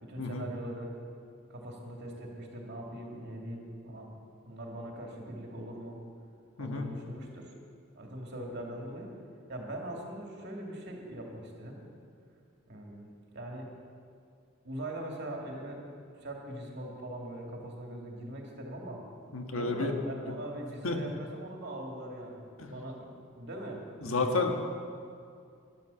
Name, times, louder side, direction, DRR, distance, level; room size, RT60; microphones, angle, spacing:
voice 1, 0.0-0.9 1.5-4.1 4.4-6.0 6.6-7.5 7.9-9.1 9.5-11.8 12.7-13.7 14.6-19.0 19.6-22.4 22.7-23.8 24.1-24.3, right 1 dB, 55° right, 0 dB, 2.6 m, -41 dB
voice 2, 19.3-19.9 20.3-20.4 20.8-21.0 22.6-22.7 24.0-24.6, left 3 dB, 80° left, 4 dB, 1.5 m, -31 dB
12.5 x 12.0 x 7.1 m, 2.3 s
head